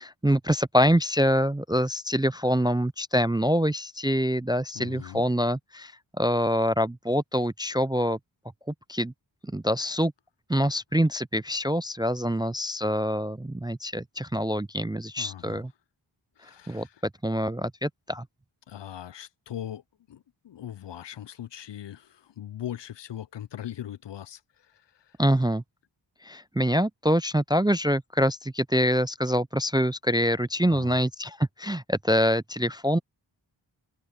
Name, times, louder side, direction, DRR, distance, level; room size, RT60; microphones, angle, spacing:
voice 1, 0.0-5.9 6.2-8.2 8.9-9.1 9.4-10.1 10.5-15.7 16.7-16.9 17.2-18.3 25.2-25.6 26.2-33.0, equal, 10° right, 0.3 m, -25 dB
voice 2, 4.7-5.2 15.2-15.7 16.4-17.0 18.7-19.8 20.1-24.4 24.7-25.2 30.7-31.0, left 11 dB, 65° left, 0.5 m, -40 dB
wide cardioid pair, 50°, 47 cm